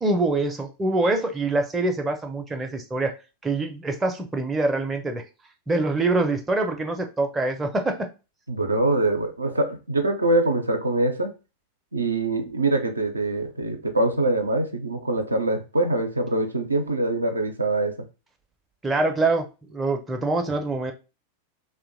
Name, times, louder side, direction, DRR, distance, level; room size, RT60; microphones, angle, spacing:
voice 1, 0.0-3.1 3.4-5.2 5.7-8.1 18.8-20.9, right 2 dB, 15° right, 0.5 m, -25 dB
voice 2, 8.5-11.3 11.9-18.0, right 2 dB, 80° right, 0.4 m, -24 dB
2.7 x 2.1 x 2.5 m
figure-of-eight pair, 90°, 0 cm